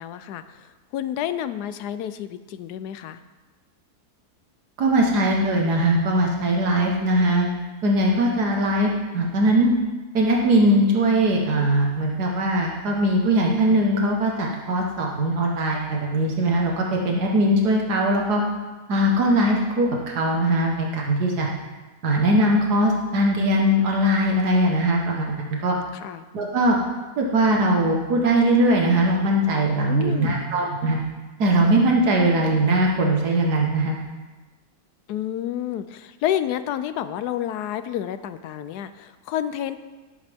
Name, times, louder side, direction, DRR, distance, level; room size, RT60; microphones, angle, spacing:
voice 1, 0.0-3.2 25.9-26.2 29.9-30.4 35.1-39.8, left 11 dB, 90° left, 12 dB, 1.2 m, -29 dB
voice 2, 4.8-7.5 7.8-9.7 10.1-18.4 18.9-21.5 22.0-25.8 26.3-26.8 27.2-31.0 31.4-34.0, right 1 dB, 90° right, -1 dB, 1.9 m, -20 dB
17.0 x 8.9 x 3.5 m, 1.2 s
omnidirectional pair, 1.7 m